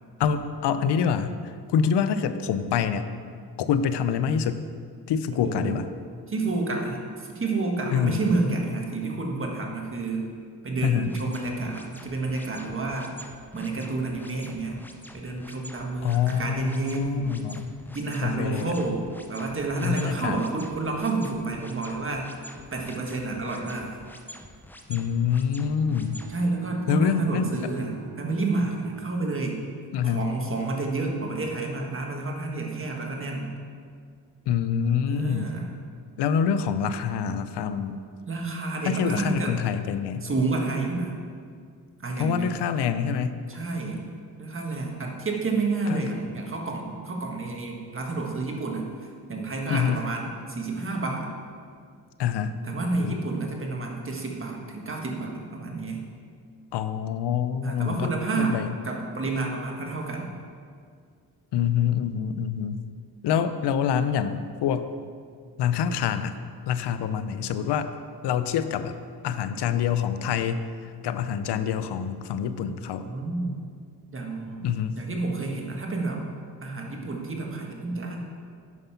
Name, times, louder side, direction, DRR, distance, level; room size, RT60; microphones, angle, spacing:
voice 1, 0.2-1.4 1.7-3.1 3.6-4.6 5.1-5.8 7.9-8.2 10.8-11.1 16.0-17.8 18.2-18.7 19.8-20.4 24.9-26.2 26.9-27.7 29.9-30.3 34.5-35.5 36.2-38.0 38.8-40.3 42.2-43.4 45.9-46.0 49.7-50.0 52.2-52.6 53.0-53.2 56.7-58.1 58.4-58.7 61.5-62.9 63.2-64.9 65.6-66.4 66.7-67.9 68.2-69.0 69.2-70.7 71.0-73.1 74.6-75.0, left 7 dB, 80° left, 11 dB, 0.7 m, -26 dB
voice 2, 5.4-5.8 6.3-10.3 10.6-13.1 13.5-14.8 15.1-17.3 17.9-22.3 22.7-24.0 26.3-29.6 30.0-33.5 35.1-35.7 38.3-39.5 40.2-41.1 42.0-42.6 43.5-44.0 44.4-51.3 52.6-56.0 57.6-58.6 58.8-60.3 73.0-73.6 74.1-74.7 74.9-76.2 76.6-78.2, right 3 dB, 30° right, 0 dB, 1.6 m, -29 dB
sound 1, 11.1-26.4, equal, 5° left, 0.7 m, -47 dB
Bowed string instrument, 25.6-29.9, right 6 dB, 80° right, 0.8 m, -44 dB
9.5 x 5.4 x 5.7 m, 2.1 s
cardioid pair, 90°, 40 cm